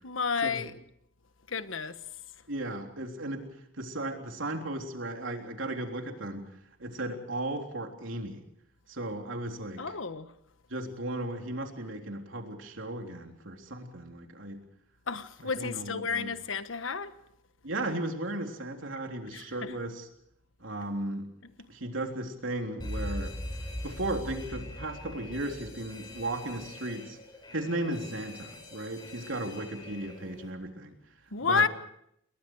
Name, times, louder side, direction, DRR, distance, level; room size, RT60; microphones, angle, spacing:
voice 1, 0.0-0.8 1.5-2.0 9.8-10.3 15.1-17.1 19.3-19.7 31.3-31.7, left 5 dB, 85° left, 1.3 m, -31 dB
voice 2, 2.5-3.5 3.8-6.5 6.8-8.4 8.9-9.8 10.7-14.6 15.4-16.3 17.6-20.1 20.6-21.3 21.7-23.3 23.8-27.2 27.5-31.0 31.4-31.7, right 1 dB, 80° right, 3.6 m, -35 dB
Alarm, 22.8-30.5, left 1 dB, 20° left, 4.6 m, -41 dB
29.0 x 21.5 x 4.8 m
head